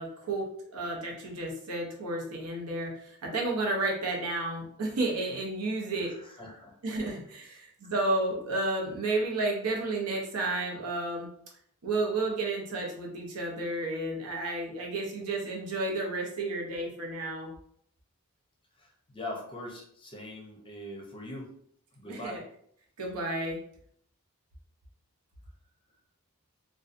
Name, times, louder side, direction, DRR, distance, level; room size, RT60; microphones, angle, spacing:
voice 1, 0.0-6.1 6.8-11.3 11.8-17.5 22.1-22.4 23.0-23.6, right 2 dB, 85° right, -1 dB, 0.7 m, -32 dB
voice 2, 6.0-6.7 18.8-21.5 22.0-22.5, left 1 dB, 25° left, 0 dB, 0.5 m, -42 dB
2.6 x 2.2 x 2.5 m, 0.66 s
head